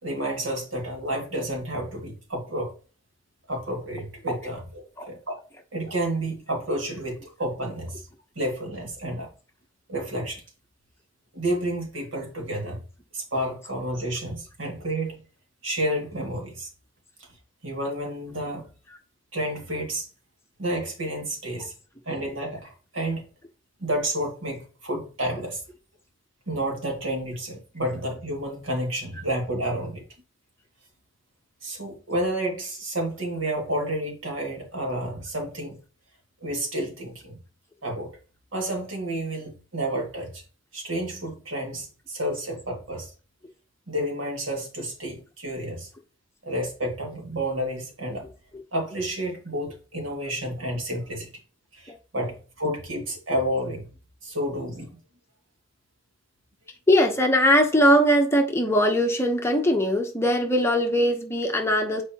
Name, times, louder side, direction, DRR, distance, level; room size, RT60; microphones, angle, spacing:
voice 1, 0.0-2.7 3.5-5.4 5.7-8.1 8.4-9.3 9.9-10.4 11.3-12.8 13.1-15.2 15.6-16.7 17.6-18.7 19.3-20.1 20.6-21.7 22.1-23.2 23.8-25.6 26.5-30.0 31.6-35.8 36.4-37.4 37.8-38.1 38.5-40.4 40.7-43.1 43.9-45.9 46.4-48.3 48.7-51.3 51.7-53.9 54.2-55.0, right 1 dB, 75° right, 2.2 m, -30 dB
voice 2, 56.9-62.0, equal, 15° left, 0.9 m, -21 dB
8.8 x 4.6 x 2.9 m
head